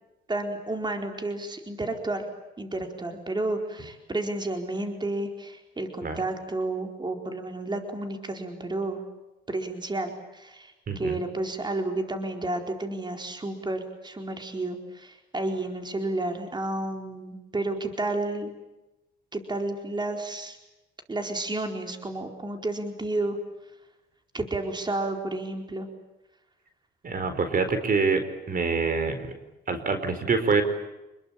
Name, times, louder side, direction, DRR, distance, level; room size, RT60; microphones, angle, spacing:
voice 1, 0.3-2.3 2.6-9.0 9.5-18.5 19.3-20.6 21.1-23.4 24.3-25.9, right 2 dB, 20° right, 4 dB, 4.4 m, -31 dB
voice 2, 10.9-11.2 27.0-29.2 29.7-30.6, right 4 dB, 45° right, 9 dB, 4.6 m, -25 dB
28.5 x 21.5 x 8.9 m, 0.99 s
cardioid pair, 90°, 20 cm